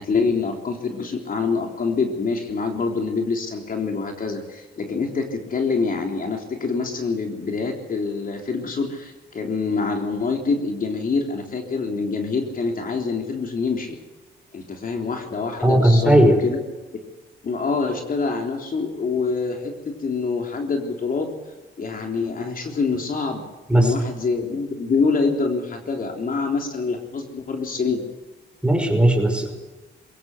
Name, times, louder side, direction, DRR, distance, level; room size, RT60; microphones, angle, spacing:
voice 1, 0.0-14.0 14.5-16.6 17.4-21.3 21.8-23.4 23.7-28.0, left 4 dB, 45° left, 3 dB, 3.6 m, -25 dB
voice 2, 15.6-16.4 23.7-23.9 28.6-29.6, right 1 dB, 5° right, 4 dB, 5.5 m, -17 dB
22.5 x 16.5 x 8.1 m, 1.2 s
cardioid pair, 90°, 20 cm